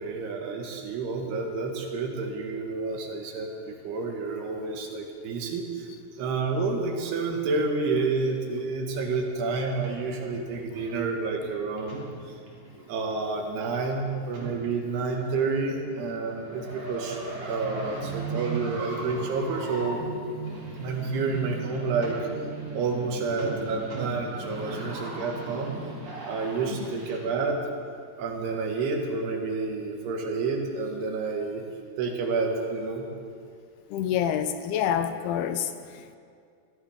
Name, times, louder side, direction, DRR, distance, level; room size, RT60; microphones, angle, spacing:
voice 1, 0.0-5.9 6.2-12.0 12.9-20.0 20.8-22.3 22.7-25.8 26.2-27.7 28.2-31.6 32.0-33.1, right 4 dB, 85° right, 1 dB, 3.8 m, -29 dB
sound 1, 9.7-27.2, right 3 dB, 45° right, 4.1 m, -38 dB
voice 2, 26.7-27.0 33.9-36.2, left 9 dB, 85° left, 9 dB, 2.7 m, -28 dB
24.5 x 15.5 x 3.6 m, 2.2 s
omnidirectional pair, 4.6 m